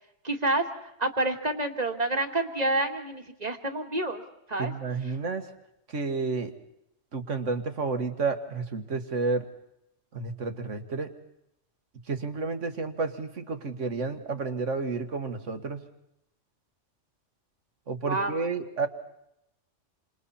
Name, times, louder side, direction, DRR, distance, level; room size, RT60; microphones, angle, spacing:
voice 1, 0.2-4.2 4.5-4.7 18.0-18.4, right 2 dB, 30° right, 5 dB, 2.0 m, -28 dB
voice 2, 4.6-5.5 5.9-6.5 7.1-9.5 10.1-11.1 12.1-15.8 17.9-18.9, right 4 dB, 70° right, 8 dB, 2.0 m, -31 dB
29.5 x 26.5 x 4.3 m, 0.81 s
omnidirectional pair, 1.3 m